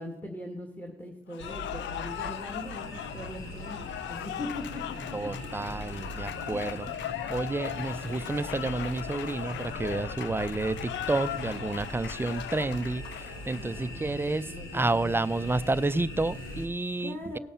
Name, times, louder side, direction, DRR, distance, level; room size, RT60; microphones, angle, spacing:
voice 1, 0.0-5.1 13.4-15.2 17.0-17.4, left 1 dB, 10° left, 1.8 m, -41 dB
Cheering / Applause, 1.3-13.9, left 13 dB, 65° left, 0.4 m, -39 dB
sound 1, 1.4-16.7, left 1 dB, 90° left, 2.6 m, -41 dB
sound 2, 1.4-14.2, left 1 dB, 50° left, 6.1 m, -54 dB
voice 2, 5.1-6.9 7.3-17.4, right 2 dB, 10° right, 0.4 m, -30 dB
17.5 x 7.0 x 5.6 m
cardioid pair, 90°, 20 cm